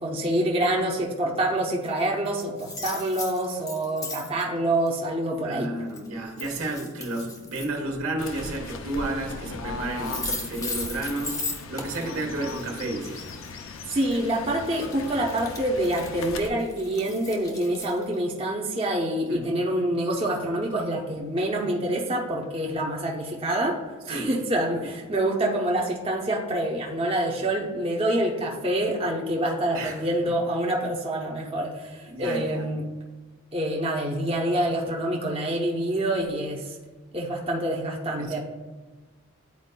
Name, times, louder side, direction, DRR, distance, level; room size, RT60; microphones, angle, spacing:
voice 1, 0.0-5.7 13.9-23.7 24.1-32.8 33.5-36.8 37.1-38.4, right 1 dB, 25° right, -2 dB, 0.7 m, -26 dB
sound 1, 1.9-2.0 2.2-4.4 4.9-5.0 5.9-6.1 6.4-7.7 9.7-9.8 10.0-18.2, left 3 dB, 15° left, 0.7 m, -37 dB
voice 2, 5.4-13.2 19.3-19.5 24.1-24.3 29.7-30.1 32.0-32.6 38.2-38.4, right 2 dB, 75° right, 1 dB, 1.2 m, -32 dB
Fowl / Bird, 8.2-16.5, left 4 dB, 65° left, 0.5 m, -38 dB
10.5 x 4.4 x 2.2 m, 1.3 s
head